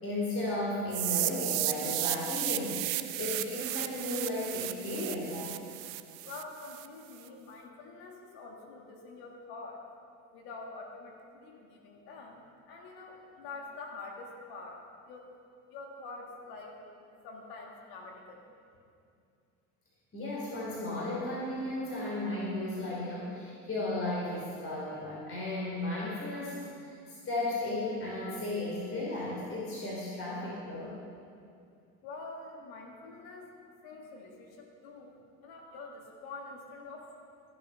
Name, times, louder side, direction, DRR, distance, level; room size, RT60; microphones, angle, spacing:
voice 1, 0.0-5.6 20.1-26.6 26.9-31.0, left 2 dB, 35° left, -5 dB, 3.4 m, -35 dB
sound 1, 0.9-6.9, right 16 dB, 80° right, 0.6 m, -34 dB
voice 2, 6.2-9.8 10.3-15.3 15.7-16.8 17.1-18.4 32.0-33.5 33.8-35.2 35.4-37.1, left 3 dB, 70° left, 0 dB, 2.0 m, -46 dB
14.5 x 7.3 x 5.5 m, 2.4 s
hypercardioid pair, 75°, 39 cm